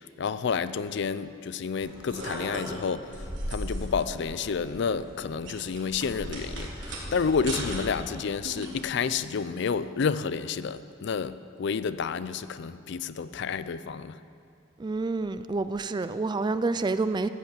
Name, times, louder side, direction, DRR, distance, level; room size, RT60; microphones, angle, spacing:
voice 1, 0.2-14.2, left 5 dB, 65° left, 0.4 m, -30 dB
sound 1, 1.8-8.9, right 1 dB, 70° right, 3.4 m, -37 dB
voice 2, 14.8-17.3, right 3 dB, 25° right, 0.3 m, -28 dB
14.0 x 8.2 x 7.4 m
head